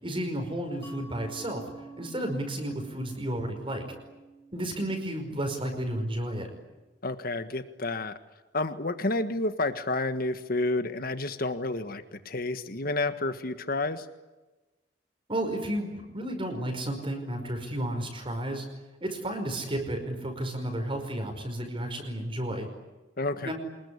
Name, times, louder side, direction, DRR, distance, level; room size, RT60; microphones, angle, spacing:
voice 1, 0.0-1.6 2.0-3.9 4.5-6.5 15.3-18.7 19.0-22.7 23.4-23.5, right 1 dB, 30° right, 3 dB, 5.2 m, -32 dB
Mallet percussion, 0.8-6.2, right 3 dB, 15° left, 3.4 m, -48 dB
voice 2, 7.0-8.2 8.5-14.1 23.2-23.5, left 2 dB, 55° left, 10 dB, 1.6 m, -30 dB
26.5 x 21.5 x 10.0 m, 1.1 s
head